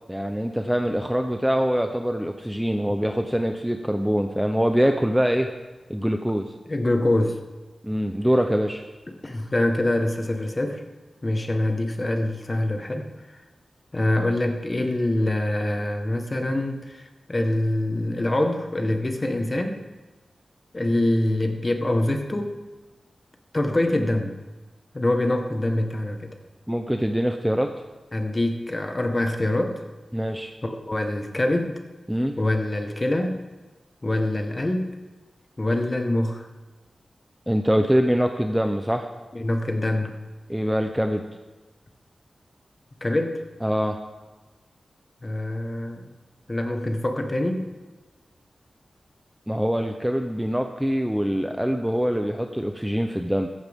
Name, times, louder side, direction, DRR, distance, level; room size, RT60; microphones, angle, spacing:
voice 1, 0.1-5.5 5.9-6.5 7.8-8.8 26.7-27.7 30.1-30.5 32.1-32.4 37.5-39.1 40.5-41.2 43.6-44.0 49.5-53.5, equal, 5° right, 5 dB, 0.7 m, -24 dB
voice 2, 6.7-7.4 9.2-10.8 11.2-13.1 13.9-19.8 20.7-22.6 23.5-24.3 24.9-26.4 28.1-29.8 30.6-31.8 32.4-33.4 34.0-35.0 35.6-36.5 39.3-40.2 43.0-43.4 45.2-46.1 46.5-47.7, left 1 dB, 30° left, 5 dB, 1.4 m, -25 dB
15.5 x 14.5 x 3.6 m, 1.2 s
wide cardioid pair, 100°, 0 cm